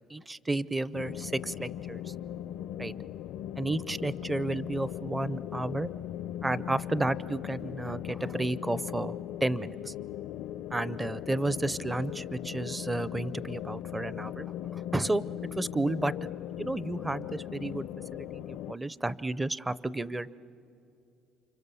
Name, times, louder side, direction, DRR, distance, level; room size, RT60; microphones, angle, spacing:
voice 1, 0.1-2.1 2.8-2.9 3.6-5.9 6.4-9.1 9.4-9.9 10.7-14.5 14.7-15.2 15.5-16.1 16.6-17.9 18.1-20.3, right 2 dB, 10° right, 18 dB, 0.6 m, -32 dB
sound 1, 0.9-18.7, left 11 dB, 80° left, 0.5 m, -39 dB
29.5 x 25.5 x 7.0 m, 2.7 s
cardioid pair, 115°, 0 cm